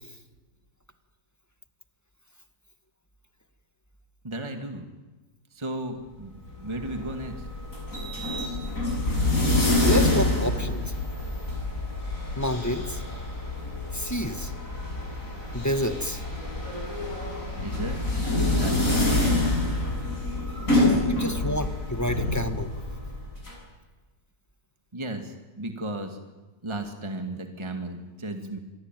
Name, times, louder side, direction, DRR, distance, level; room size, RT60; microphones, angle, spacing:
voice 1, 4.2-4.9 5.5-7.5 17.6-18.0 18.6-19.5 20.4-20.9 24.9-26.2 26.6-28.6, right 1 dB, 15° right, 5 dB, 2.2 m, -35 dB
sound 1, 6.5-23.5, left 2 dB, 45° left, 7.8 m, -27 dB
voice 2, 9.8-10.9 12.4-13.0 13.9-14.5 15.5-16.2 21.0-22.7, equal, 10° left, 8 dB, 1.6 m, -28 dB
27.0 x 21.5 x 9.3 m, 1.2 s
omnidirectional pair, 1.9 m